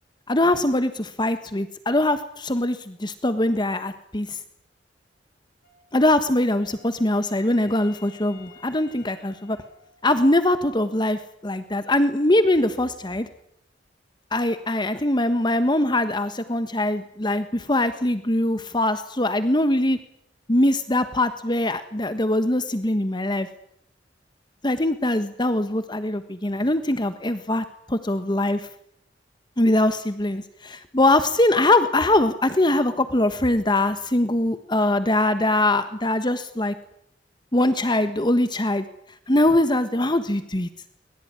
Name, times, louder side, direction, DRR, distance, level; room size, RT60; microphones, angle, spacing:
voice 1, 0.3-4.4 5.9-9.6 10.0-13.3 14.3-20.0 20.5-23.5 24.6-28.6 29.6-36.7 37.5-38.8 39.3-40.7, left 1 dB, 25° left, 10 dB, 1.4 m, -22 dB
Wind instrument woodwind instrument, 5.6-10.4, left 7 dB, 55° left, 7.9 m, -52 dB
24.0 x 22.0 x 9.8 m, 0.73 s
head